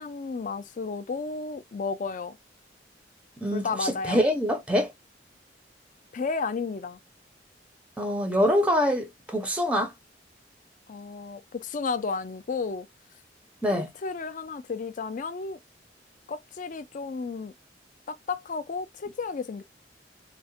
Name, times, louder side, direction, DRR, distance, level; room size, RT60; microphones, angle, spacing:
voice 1, 0.0-2.4 3.5-4.2 6.1-7.0 10.9-12.9 13.7-15.6 16.3-17.5 18.1-19.6, left 4 dB, 45° left, 0.4 m, -33 dB
voice 2, 3.4-4.9 8.0-9.9 13.6-13.9, equal, 5° right, 0.5 m, -25 dB
3.6 x 2.1 x 2.7 m
head